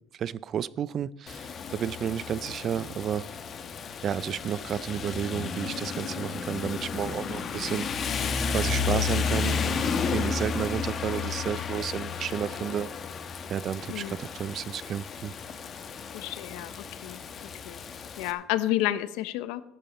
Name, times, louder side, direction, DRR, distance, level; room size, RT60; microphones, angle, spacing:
voice 1, 0.2-3.3 4.0-12.9 13.5-15.3, right 9 dB, 40° right, 20 dB, 0.4 m, -32 dB
Rain, 1.3-18.3, left 6 dB, 35° left, 1.1 m, -32 dB
voice 2, 16.1-17.2 17.7-17.8 18.2-19.6, left 14 dB, 80° left, 15 dB, 0.7 m, -30 dB
13.5 x 10.5 x 4.2 m, 0.84 s
cardioid pair, 120°, 0 cm